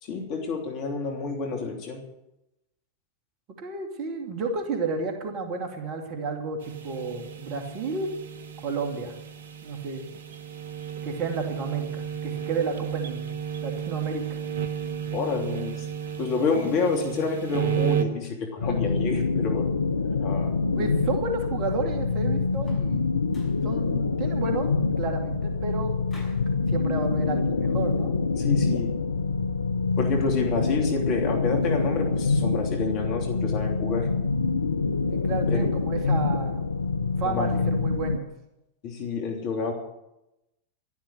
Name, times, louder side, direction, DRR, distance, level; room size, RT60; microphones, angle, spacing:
voice 1, 0.0-2.0 15.1-15.8 16.2-19.7 20.2-20.6 28.4-28.9 30.0-34.1 35.5-35.6 37.2-37.5 38.8-39.7, left 4 dB, 40° left, 2 dB, 3.2 m, -29 dB
voice 2, 3.6-8.1 8.6-9.1 9.6-10.0 11.0-13.3 13.6-14.5 20.8-23.0 23.6-24.7 25.0-25.9 26.7-28.1 35.1-36.7 37.2-38.3, right 4 dB, 35° right, 3 dB, 2.6 m, -31 dB
sound 1, 6.6-18.1, right 8 dB, 60° right, 1.4 m, -33 dB
sound 2, 18.6-38.2, left 4 dB, 75° left, 0.5 m, -26 dB
sound 3, 22.5-23.0 23.3-23.7 26.1-26.5, left 1 dB, 20° left, 6.5 m, -48 dB
12.5 x 12.0 x 8.1 m, 0.89 s
figure-of-eight pair, 90°, 0 cm